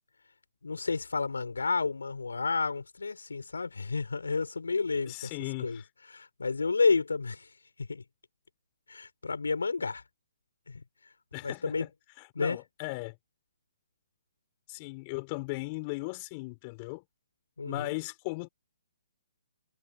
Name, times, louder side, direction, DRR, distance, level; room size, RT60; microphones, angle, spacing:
voice 1, 0.6-5.3 5.6-5.8 6.1-7.5 7.9-8.0 8.9-10.0 10.7-10.8 11.4-11.9 12.3-12.6 17.6-17.9, left 4 dB, 80° left, 4.5 m, -30 dB
voice 2, 5.1-5.8 11.3-11.9 12.2-13.2 14.7-17.0 17.6-18.5, left 27 dB, 35° left, 5.9 m, -37 dB
hypercardioid pair, 135°, 0 cm